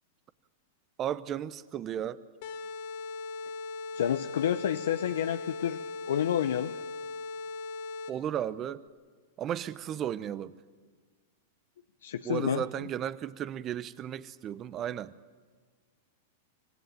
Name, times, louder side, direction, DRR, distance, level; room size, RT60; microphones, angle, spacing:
voice 1, 1.0-2.2 8.1-8.8 9.4-10.5 12.2-15.1, right 10 dB, 35° right, 16 dB, 0.9 m, -34 dB
sound 1, 2.4-8.4, left 3 dB, 60° left, 1.5 m, -39 dB
voice 2, 3.9-5.8 6.0-6.7 12.0-12.9, left 9 dB, 80° left, 10 dB, 0.7 m, -29 dB
26.0 x 17.0 x 9.1 m, 1.5 s
hypercardioid pair, 115°, 0 cm